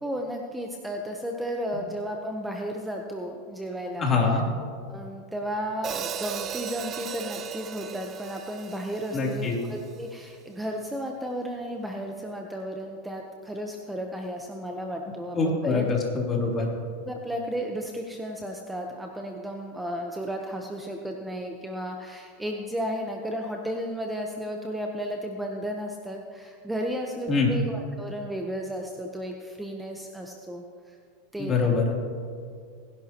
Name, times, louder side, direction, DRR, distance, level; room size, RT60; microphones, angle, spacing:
voice 1, 0.0-4.1 4.9-15.9 17.1-31.0 31.3-31.8, equal, 5° right, 2 dB, 0.9 m, -34 dB
voice 2, 4.0-4.4 9.1-9.6 15.3-16.7 27.3-27.5 31.4-31.9, left 4 dB, 30° left, -2 dB, 3.0 m, -24 dB
Hi-hat, 5.8-10.0, right 8 dB, 35° right, 0.7 m, -37 dB
21.0 x 11.0 x 2.9 m, 2.2 s
supercardioid pair, 125°, 0 cm